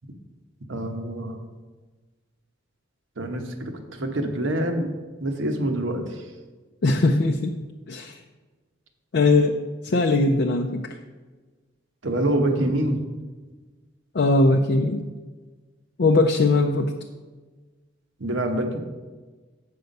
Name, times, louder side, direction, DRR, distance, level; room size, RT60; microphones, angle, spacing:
voice 1, 0.7-1.4 3.2-4.9 5.2-6.2 12.0-13.0 18.2-18.8, right 1 dB, 75° right, 4 dB, 1.1 m, -26 dB
voice 2, 6.8-7.6 7.9-8.2 9.1-9.6 9.8-10.9 14.1-15.1 16.0-17.0, left 2 dB, 55° left, 3 dB, 0.4 m, -20 dB
8.0 x 5.7 x 5.3 m, 1.3 s
head